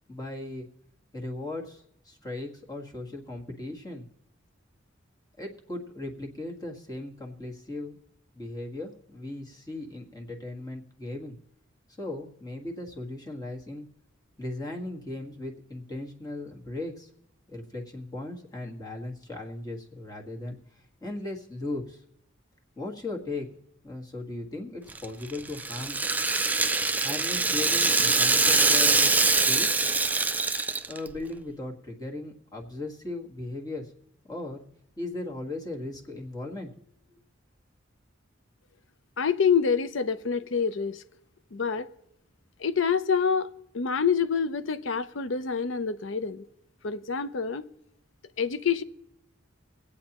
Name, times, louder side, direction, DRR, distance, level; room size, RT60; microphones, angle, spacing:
voice 1, 0.1-0.7 1.1-4.1 5.4-8.0 8.3-11.4 12.0-13.8 14.4-17.1 17.5-22.0 22.7-23.5 23.8-26.0 27.0-29.7 30.9-33.9 34.2-34.6 35.0-36.7, left 2 dB, 20° left, 1.6 m, -37 dB
Rattle (instrument), 24.9-31.1, right 3 dB, 10° right, 0.4 m, -23 dB
voice 2, 39.2-41.0 41.5-41.9 42.6-46.5 46.8-47.7 48.4-48.8, left 6 dB, 75° left, 0.6 m, -27 dB
22.0 x 8.4 x 2.9 m
head